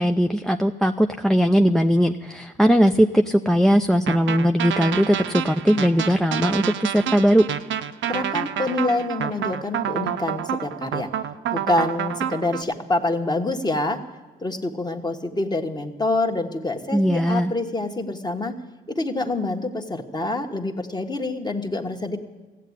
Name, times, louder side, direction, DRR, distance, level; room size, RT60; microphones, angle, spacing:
voice 1, 0.0-7.5 16.9-17.5, equal, ahead, 6 dB, 0.5 m, -19 dB
sound 1, 4.1-12.6, right 9 dB, 75° right, 0.8 m, -28 dB
voice 2, 8.1-11.1 11.5-14.0 14.4-18.5 18.9-22.2, left 2 dB, 20° left, 5 dB, 1.4 m, -26 dB
15.5 x 8.3 x 9.8 m, 1.3 s
cardioid pair, 90°, 20 cm